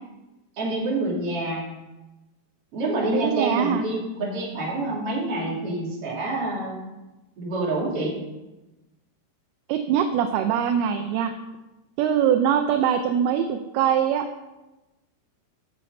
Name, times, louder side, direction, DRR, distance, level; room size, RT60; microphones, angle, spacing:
voice 1, 0.5-1.7 2.7-6.8 7.4-8.2, right 2 dB, 35° right, -4 dB, 3.4 m, -27 dB
voice 2, 3.1-3.8 9.7-11.3 12.0-14.3, right 9 dB, 80° right, 6 dB, 2.4 m, -22 dB
17.5 x 6.9 x 4.1 m, 1.1 s
omnidirectional pair, 4.9 m